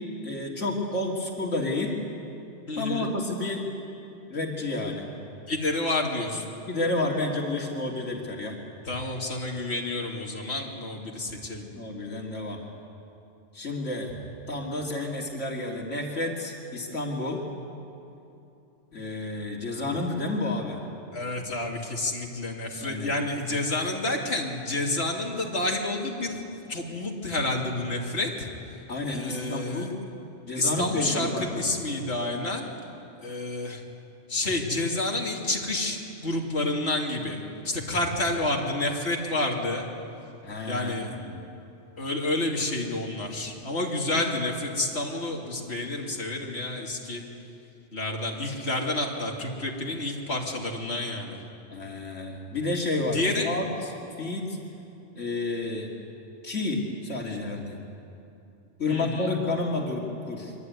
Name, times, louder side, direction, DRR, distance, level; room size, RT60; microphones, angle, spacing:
voice 1, 0.2-2.0 2.8-3.7 4.3-5.1 6.7-8.6 11.7-12.6 13.5-14.1 14.5-17.4 18.9-20.8 22.8-23.1 28.9-30.0 30.5-31.7 40.4-40.9 41.3-41.4 51.7-53.6 54.2-54.6 55.1-55.9 56.4-57.8 58.8-60.5, left 2 dB, 85° left, -1 dB, 2.8 m, -30 dB
voice 2, 2.7-3.1 5.5-6.5 8.8-11.7 21.1-26.4 26.7-28.5 29.1-29.9 30.5-32.7 33.2-33.8 34.3-39.8 40.7-41.1 42.0-47.2 47.9-51.4 53.1-53.5 58.9-59.3, left 2 dB, 60° left, -1 dB, 3.0 m, -29 dB
24.0 x 24.0 x 9.5 m, 2.9 s
omnidirectional pair, 1.2 m